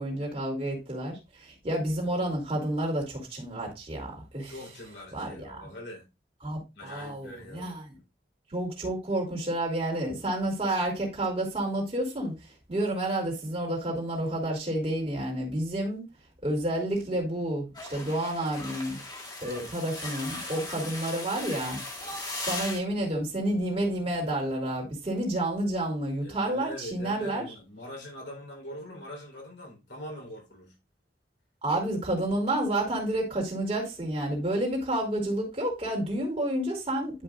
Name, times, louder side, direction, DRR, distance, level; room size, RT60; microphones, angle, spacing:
voice 1, 0.0-4.5 5.1-5.7 6.4-7.8 8.5-12.3 12.7-16.1 16.4-19.0 19.4-22.2 22.5-27.4 31.6-37.2, right 1 dB, 35° right, 2.8 m, -30 dB
voice 2, 4.5-6.1 6.7-8.0 26.2-30.8, left 1 dB, 80° left, 3.6 m, -43 dB
sound 1, 17.7-22.8, left 2 dB, 25° left, 1.7 m, -38 dB
10.5 x 5.2 x 2.4 m
head